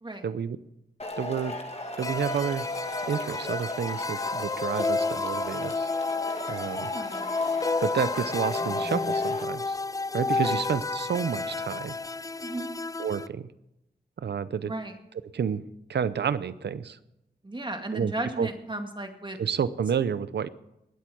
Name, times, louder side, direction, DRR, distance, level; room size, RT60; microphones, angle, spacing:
voice 1, 0.2-0.6 1.2-1.5 2.0-2.7 3.1-5.9 6.5-6.9 7.8-9.8 10.1-12.0 13.0-13.5 14.2-14.7 15.3-15.6 15.9-17.0 17.9-18.5 19.4-20.5, right 7 dB, 80° right, 15 dB, 0.7 m, -30 dB
Male speech man speaking / Shout / Clapping, 1.0-9.4, left 2 dB, 35° left, 2.1 m, -35 dB
sound 1, 2.0-13.3, left 3 dB, 20° left, 0.4 m, -31 dB
voice 2, 6.8-7.3 10.3-10.5 12.4-12.7 14.6-14.9 17.4-19.4, right 2 dB, 25° right, 5 dB, 2.1 m, -35 dB
20.5 x 8.4 x 6.3 m, 0.88 s
cardioid pair, 55°, 17 cm